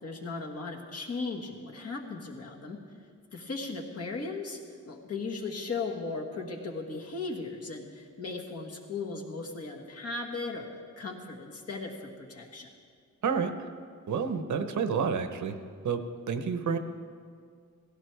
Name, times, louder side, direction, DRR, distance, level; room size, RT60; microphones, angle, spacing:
voice 1, 0.0-2.8 3.3-4.6 4.9-12.7, left 3 dB, 55° left, 0 dB, 1.6 m, -37 dB
voice 2, 14.1-15.5 15.8-16.0 16.3-16.8, right 6 dB, 75° right, 8 dB, 0.9 m, -29 dB
17.0 x 16.0 x 3.4 m, 2.1 s
wide cardioid pair, 150°, 30 cm